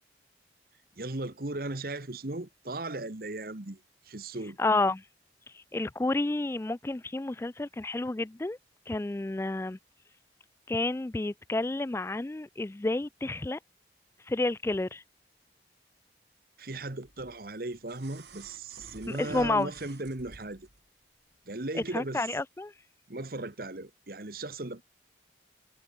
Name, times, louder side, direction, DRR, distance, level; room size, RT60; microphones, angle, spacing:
voice 1, 1.0-4.6 16.6-20.7 21.5-22.3 23.1-24.8, right 2 dB, 55° right, 1.4 m, -37 dB
voice 2, 4.6-5.0 5.5-8.6 8.9-9.8 10.7-13.6 14.3-15.0 19.1-19.7 21.9-22.7, left 2 dB, 15° left, 0.3 m, -30 dB
sound 1, 17.0-20.8 22.1-22.2, right 2 dB, 70° right, 3.8 m, -50 dB
head